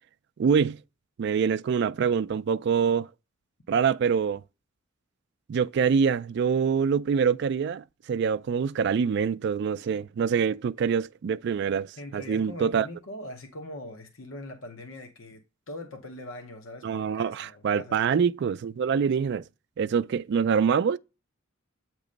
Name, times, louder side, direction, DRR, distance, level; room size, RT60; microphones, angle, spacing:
voice 1, 0.4-0.8 1.2-3.1 3.7-4.4 5.5-12.9 16.8-19.4 19.8-21.0, right 6 dB, 55° right, 0.3 m, -25 dB
voice 2, 12.0-18.2, left 1 dB, 75° left, 0.9 m, -42 dB
8.4 x 3.0 x 5.1 m
head